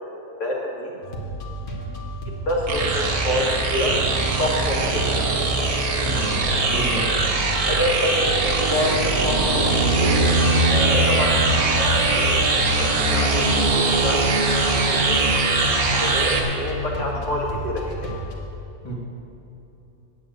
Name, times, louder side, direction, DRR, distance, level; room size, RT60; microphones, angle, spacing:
voice 1, 0.4-0.9 2.5-3.9 4.4-5.2 7.6-9.8 10.2-10.4 10.7-13.6 14.0-14.2 14.6-15.2 15.9-18.1, left 1 dB, 55° left, -3 dB, 2.3 m, -27 dB
sound 1, 1.0-18.3, equal, 35° left, 1.6 m, -32 dB
sound 2, 2.7-16.4, right 3 dB, 75° right, 1.7 m, -21 dB
voice 2, 6.0-7.2 18.8-18.9, right 2 dB, 20° left, -4 dB, 1.9 m, -31 dB
sound 3, 8.6-12.7 15.1-15.2, right 2 dB, 60° right, 1.6 m, -25 dB
9.3 x 8.6 x 8.0 m, 2.9 s
omnidirectional pair, 1.6 m